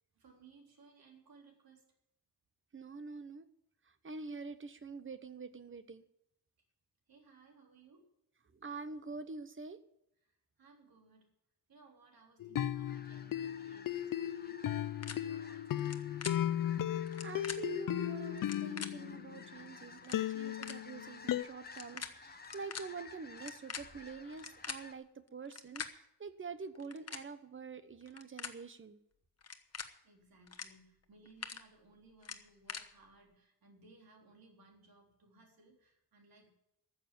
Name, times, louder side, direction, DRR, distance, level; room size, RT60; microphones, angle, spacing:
voice 1, 0.1-1.9 7.1-8.1 10.2-11.3 11.7-16.1 25.3-25.7 29.7-36.5, right 3 dB, 65° right, 1 dB, 3.9 m, -63 dB
voice 2, 2.7-3.5 3.8-6.0 8.5-9.8 17.2-29.0, right 4 dB, 30° right, 12 dB, 1.0 m, -46 dB
sound 1, 12.4-19.7 20.1-21.4, left 11 dB, 55° left, 0.6 m, -36 dB
sound 2, 12.9-24.9, left 4 dB, 25° left, 1.1 m, -55 dB
sound 3, 15.0-15.1 15.8-16.0 16.2-16.3 17.1-17.6 18.4-18.9 19.7-19.8 20.0-20.2 20.6-20.8 21.7-22.1 22.4-22.8 23.4-24.8 25.5-25.9 26.8-27.2 28.0-28.5 29.4-29.9 30.5-30.7 31.0-31.6 32.2-32.8, left 6 dB, 40° left, 1.2 m, -43 dB
14.0 x 7.3 x 9.1 m, 0.79 s
wide cardioid pair, 140°, 38 cm